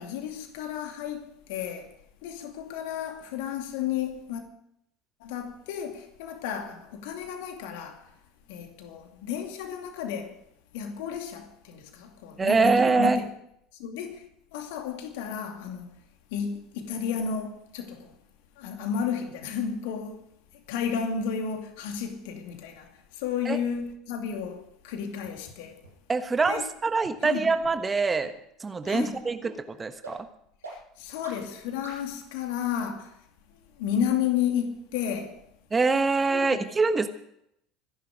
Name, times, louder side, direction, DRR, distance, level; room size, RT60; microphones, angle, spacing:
voice 1, 0.0-1.9 2.2-4.4 5.2-8.2 8.5-10.4 10.7-13.3 13.7-16.0 16.3-18.2 18.6-20.3 20.5-25.8 26.5-26.7 27.2-27.5 28.9-29.2 30.7-33.2 33.8-35.4 36.3-36.6, left 8 dB, 60° left, 2.4 m, -32 dB
voice 2, 12.4-13.2 23.5-23.6 26.1-28.3 28.6-30.3 35.7-37.1, right 4 dB, 20° right, 1.3 m, -24 dB
sound 1, 25.2-25.3 25.8-25.9 26.4-26.5 27.0-27.1 27.6-27.7 28.2-28.3 28.8-28.9 29.4-29.5 30.0-30.1 30.6-30.7 31.2-31.3 31.8-31.9, right 3 dB, 85° right, 6.2 m, -43 dB
25.0 x 11.0 x 5.1 m
figure-of-eight pair, 70°, 0 cm